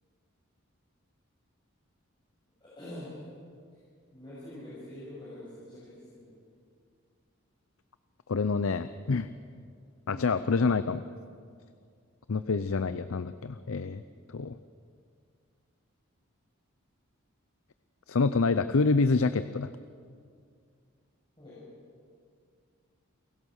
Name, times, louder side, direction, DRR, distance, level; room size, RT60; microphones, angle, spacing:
voice 1, 2.6-3.2 4.1-6.4 10.1-10.3 21.4-21.6, left 1 dB, 20° left, -10 dB, 7.0 m, -45 dB
voice 2, 8.3-9.3 10.1-11.0 12.3-14.0 14.3-14.6 18.1-19.7, left 4 dB, 75° left, 12 dB, 0.6 m, -27 dB
29.5 x 16.5 x 6.5 m, 2.2 s
head